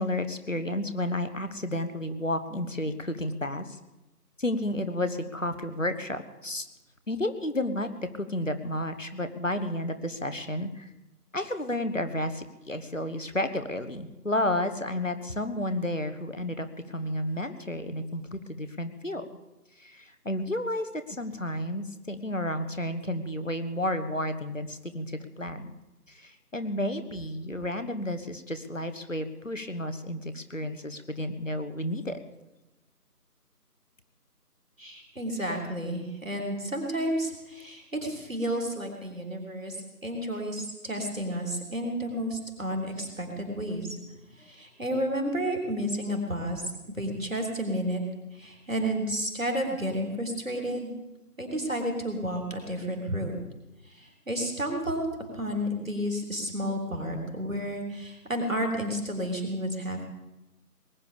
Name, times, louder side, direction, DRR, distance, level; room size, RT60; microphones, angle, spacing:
voice 1, 0.0-3.8 4.4-6.7 7.1-10.9 11.3-19.3 19.8-25.7 26.1-32.2, left 1 dB, 55° left, 10 dB, 1.3 m, -32 dB
voice 2, 34.8-39.8 40.0-44.0 44.4-48.0 48.3-50.9 51.4-53.3 53.9-55.1 55.3-60.1, equal, 55° right, 2 dB, 3.6 m, -31 dB
20.0 x 10.5 x 7.0 m, 0.99 s
figure-of-eight pair, 175°, 47 cm